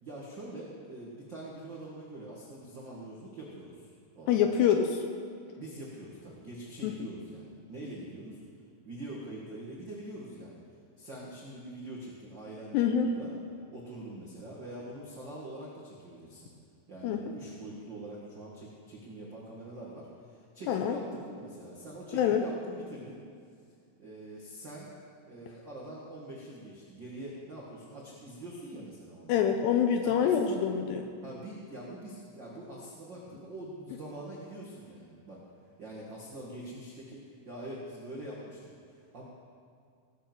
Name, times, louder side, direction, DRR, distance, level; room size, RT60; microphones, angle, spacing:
voice 1, 0.0-4.5 5.6-8.4 8.8-10.6 11.0-13.3 13.7-16.5 16.9-23.2 24.0-24.9 25.2-29.3 30.0-30.6 31.2-35.4 35.8-38.6 38.9-39.2, right 1 dB, 75° right, -6 dB, 1.0 m, -44 dB
voice 2, 4.3-5.0 6.8-6.9 12.7-13.1 17.0-17.2 20.7-21.0 22.1-22.4 29.3-31.1, left 8 dB, 80° left, 5 dB, 2.5 m, -26 dB
18.5 x 7.1 x 6.1 m, 2.2 s
omnidirectional pair, 5.3 m